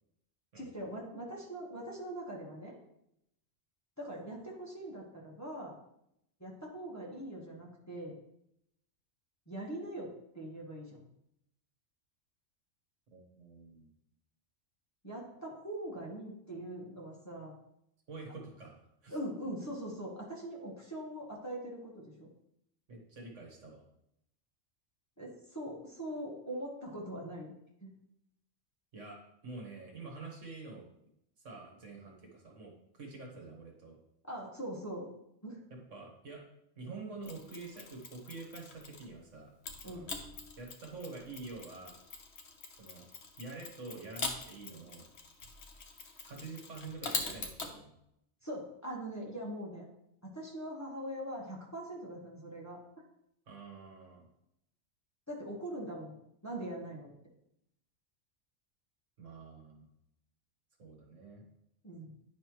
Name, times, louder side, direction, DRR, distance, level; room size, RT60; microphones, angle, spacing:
voice 1, 0.6-2.7 4.0-5.8 6.4-8.2 9.5-11.1 15.0-17.5 19.1-22.3 25.2-27.5 27.8-27.9 34.3-35.1 35.4-35.6 39.8-40.1 48.4-49.8 50.3-52.8 55.3-57.1 61.8-62.1, right 1 dB, 15° left, -3 dB, 1.3 m, -42 dB
voice 2, 13.1-13.9 18.1-19.2 22.9-23.8 28.9-30.9 31.4-34.0 35.7-36.4 36.8-39.5 39.8-40.1 40.6-42.0 42.7-43.1 43.4-45.1 46.2-47.9 53.5-54.2 59.2-59.9 60.8-61.5, right 3 dB, 70° right, 0 dB, 1.8 m, -47 dB
Mechanisms, 37.2-39.1 39.6-47.7, left 4 dB, 60° left, 1.2 m, -43 dB
9.7 x 5.4 x 3.1 m, 0.79 s
omnidirectional pair, 1.3 m